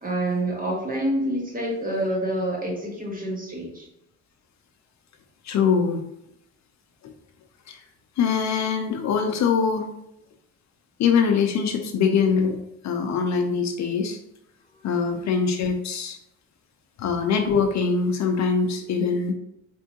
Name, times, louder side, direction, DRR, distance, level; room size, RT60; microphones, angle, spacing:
voice 1, 0.0-3.9 15.1-15.3, right 1 dB, 30° right, 0 dB, 1.5 m, -27 dB
voice 2, 5.4-6.0 7.7-7.8 8.2-9.9 11.0-14.2 14.8-16.2 17.0-19.3, left 6 dB, 65° left, 5 dB, 0.6 m, -23 dB
4.4 x 3.4 x 2.8 m, 0.83 s
cardioid pair, 90°, 30 cm